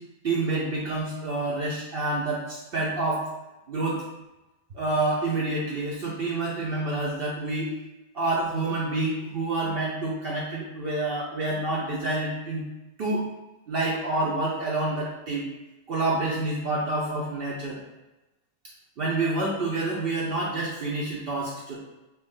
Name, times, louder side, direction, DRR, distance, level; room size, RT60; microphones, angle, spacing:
voice 1, 0.2-3.2 3.7-4.0 4.7-7.7 8.1-12.6 13.0-13.2 13.7-15.4 15.9-17.8 19.0-21.8, right 2 dB, 60° right, -4 dB, 0.7 m, -28 dB
3.0 x 2.9 x 3.6 m, 1.0 s
omnidirectional pair, 1.3 m